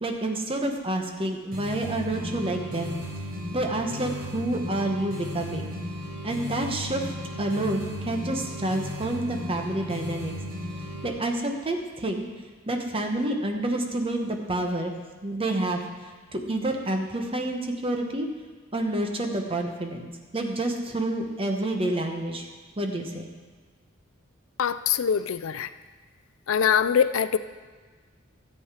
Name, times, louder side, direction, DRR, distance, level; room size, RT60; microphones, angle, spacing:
voice 1, 0.0-3.0 3.5-5.7 6.2-10.3 10.7-12.3 12.7-14.9 15.2-15.8 16.3-18.3 18.7-22.5 22.8-23.3, right 1 dB, 25° right, 3 dB, 1.1 m, -28 dB
sound 1, 1.5-11.1, left 1 dB, 50° right, 4.1 m, -35 dB
voice 2, 24.6-25.7 26.5-27.4, left 7 dB, 80° left, 13 dB, 0.4 m, -23 dB
13.5 x 7.9 x 4.9 m, 1.4 s
head